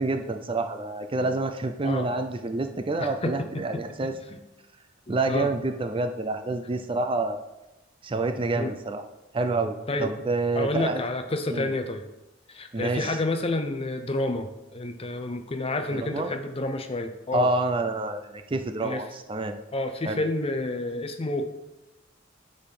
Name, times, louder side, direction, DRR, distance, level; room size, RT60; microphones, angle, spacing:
voice 1, 0.0-4.1 5.1-7.4 8.0-9.0 9.3-11.0 11.5-11.7 12.7-13.2 15.9-16.3 17.3-19.6 20.0-20.2, right 2 dB, 25° right, 7 dB, 0.5 m, -28 dB
voice 2, 3.0-3.8 5.1-5.5 8.6-8.7 9.9-10.1 10.6-12.0 12.5-17.5 18.8-19.0 19.7-21.5, left 2 dB, 30° left, 7 dB, 0.7 m, -29 dB
9.7 x 4.0 x 5.9 m, 0.99 s
head